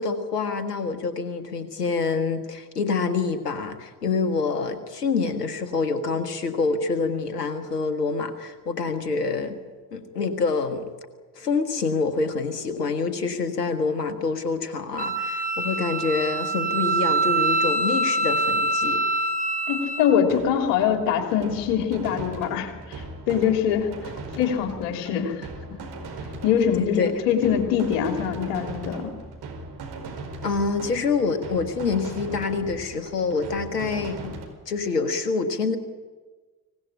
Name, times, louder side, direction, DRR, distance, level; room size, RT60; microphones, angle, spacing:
voice 1, 0.0-9.6 9.9-10.9 11.3-19.0 26.6-27.1 30.4-34.3 34.7-35.8, left 4 dB, 80° left, 10 dB, 1.6 m, -26 dB
Wind instrument woodwind instrument, 15.0-20.1, right 2 dB, 20° right, 5.0 m, -24 dB
voice 2, 19.7-25.8 26.4-29.1, left 8 dB, 65° left, 5 dB, 3.3 m, -24 dB
sound 1, 20.3-34.5, right 3 dB, 55° right, 4.6 m, -39 dB
24.5 x 17.5 x 9.9 m, 1.3 s
figure-of-eight pair, 45°, 46 cm